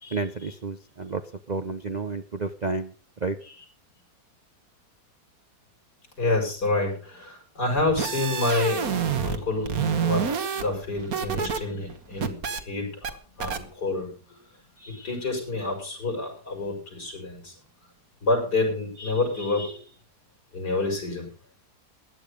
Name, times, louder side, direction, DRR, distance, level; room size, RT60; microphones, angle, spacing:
voice 1, 0.1-1.2 1.5-2.9 3.2-3.4, right 3 dB, 45° right, 8 dB, 0.5 m, -30 dB
voice 2, 6.2-8.9 9.2-10.3 10.5-12.4 12.7-14.1 14.8-17.5 18.2-19.8 20.5-21.3, left 2 dB, 80° left, 0 dB, 6.4 m, -28 dB
sound 1, 7.8-9.4 9.7-11.6 11.9-12.6 13.0-13.1 13.4-13.6, right 7 dB, 60° right, 1.7 m, -27 dB
16.0 x 10.5 x 5.2 m, 0.39 s
omnidirectional pair, 1.7 m